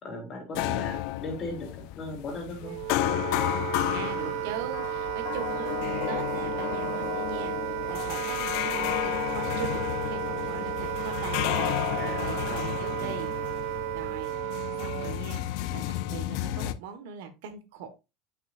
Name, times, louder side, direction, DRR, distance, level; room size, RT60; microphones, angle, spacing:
voice 1, 0.0-2.8 11.9-12.7 13.0-13.2, left 2 dB, 25° left, 1 dB, 2.7 m, -38 dB
sound 1, 0.5-16.7, left 15 dB, 55° left, 0.5 m, -32 dB
Wind instrument woodwind instrument, 2.6-15.3, right 19 dB, 60° right, 0.4 m, -33 dB
voice 2, 3.8-11.8 12.0-13.3 13.9-15.8 16.1-17.9, right 7 dB, 85° right, 8 dB, 1.5 m, -41 dB
8.3 x 5.9 x 2.6 m, 0.26 s
cardioid pair, 170°, 0 cm